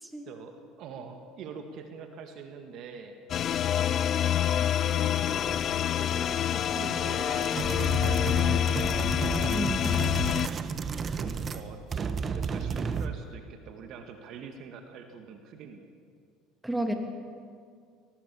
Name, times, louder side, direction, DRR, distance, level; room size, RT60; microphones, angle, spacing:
voice 1, 0.3-3.2 4.7-5.6 6.0-9.0 11.2-16.0, right 6 dB, 55° right, 6 dB, 2.0 m, -44 dB
sound 1, 3.3-10.5, left 10 dB, 45° left, 0.7 m, -27 dB
sound 2, 7.4-11.6 11.9-13.2, right 5 dB, 35° right, 1.3 m, -32 dB
voice 2, 9.5-10.0 16.6-16.9, right 1 dB, 5° right, 4 dB, 3.2 m, -31 dB
22.5 x 19.0 x 7.1 m, 2.2 s
hypercardioid pair, 70°, 0 cm